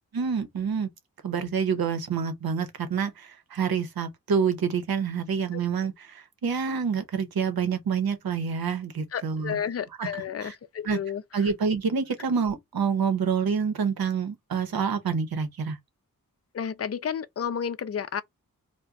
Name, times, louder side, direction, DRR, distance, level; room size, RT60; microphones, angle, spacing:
voice 1, 0.1-0.9 1.2-5.9 6.4-9.6 10.0-10.1 10.4-10.5 10.8-11.0 11.3-15.8, right 6 dB, 85° right, 0.8 m, -27 dB
voice 2, 9.1-11.5 16.5-18.2, left 7 dB, 45° left, 0.5 m, -32 dB
2.4 x 2.2 x 3.9 m
wide cardioid pair, 70°, 35 cm